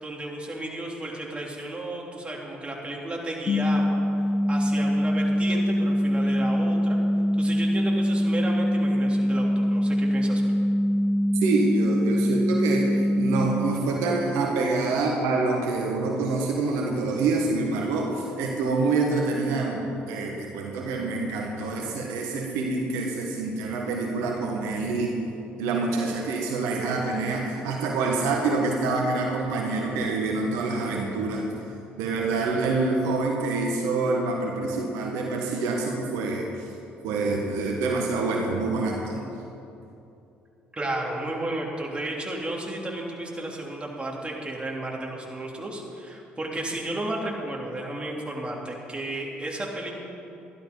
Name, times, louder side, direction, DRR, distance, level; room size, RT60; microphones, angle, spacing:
voice 1, 0.0-4.0 4.5-7.0 7.4-10.4 40.7-49.9, right 1 dB, 20° right, -2 dB, 3.3 m, -33 dB
sound 1, 3.5-13.5, equal, 40° left, 1.2 m, -23 dB
voice 2, 11.3-25.2 25.6-31.7 32.0-36.7 37.0-39.3, right 3 dB, 75° right, 0 dB, 1.5 m, -26 dB
13.0 x 11.5 x 5.4 m, 2.8 s
hypercardioid pair, 55°, 5 cm